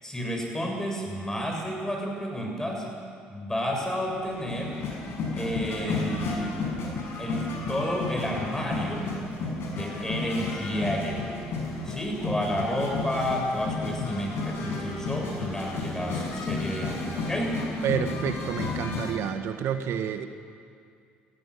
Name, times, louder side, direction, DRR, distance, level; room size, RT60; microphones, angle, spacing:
voice 1, 0.0-2.8 3.3-4.7 5.3-6.6 7.2-9.2 9.7-11.3 11.9-17.6, equal, 10° left, 1 dB, 7.3 m, -31 dB
sound 1, 3.9-19.1, left 3 dB, 60° left, 6.1 m, -32 dB
voice 2, 17.8-20.3, right 8 dB, 60° right, 8 dB, 1.3 m, -29 dB
19.0 x 15.5 x 9.9 m, 2.3 s
hypercardioid pair, 65°, 5 cm